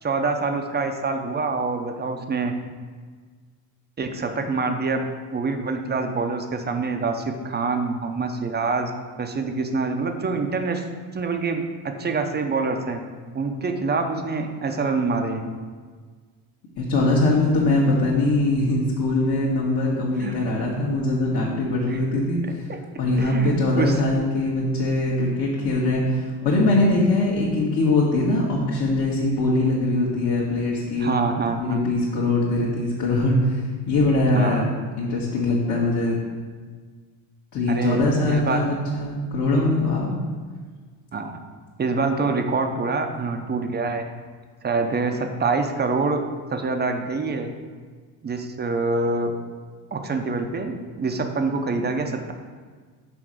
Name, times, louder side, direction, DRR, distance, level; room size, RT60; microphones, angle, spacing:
voice 1, 0.0-2.5 4.0-5.0 5.3-8.9 9.2-10.8 11.1-13.0 13.3-15.4 20.2-20.4 21.9-22.0 22.7-22.8 23.2-24.0 31.0-31.8 34.3-34.6 37.7-38.6 41.1-41.4 41.8-44.0 44.6-46.2 46.5-47.5 48.2-49.3 49.9-52.3, right 4 dB, 20° right, 5 dB, 0.7 m, -25 dB
voice 2, 16.8-22.7 23.0-31.1 31.6-34.7 35.0-36.1 37.5-40.1, left 2 dB, 45° left, -5 dB, 1.7 m, -22 dB
6.1 x 4.2 x 6.3 m, 1.5 s
cardioid pair, 110°, 46 cm